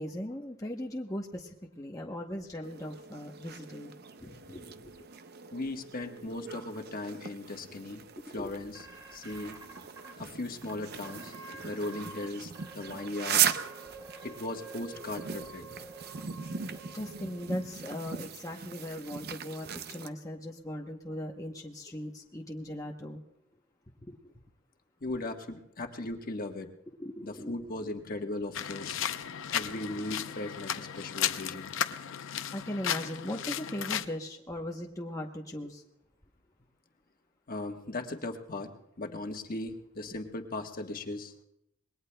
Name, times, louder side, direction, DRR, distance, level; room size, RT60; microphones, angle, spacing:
voice 1, 0.0-3.9 4.2-4.9 8.4-8.5 16.9-23.2 24.1-24.3 27.0-27.6 29.9-30.0 32.5-35.8, left 1 dB, 15° left, 0 dB, 0.9 m, -39 dB
sound 1, 2.6-20.1, right 8 dB, 50° right, 0.7 m, -38 dB
voice 2, 5.5-8.0 8.3-8.8 9.1-9.6 10.2-11.3 11.6-13.5 14.2-15.6 25.0-26.7 27.2-29.0 29.5-31.7 37.5-38.7 39.0-41.3, left 2 dB, 45° left, 4 dB, 1.3 m, -38 dB
sound 2, 8.7-10.1 10.6-10.7 11.0-12.3 12.5-17.7, right 3 dB, 15° right, 3.2 m, -48 dB
sound 3, 28.5-34.0, left 9 dB, 70° left, 0.6 m, -34 dB
26.5 x 21.0 x 2.2 m, 0.82 s
head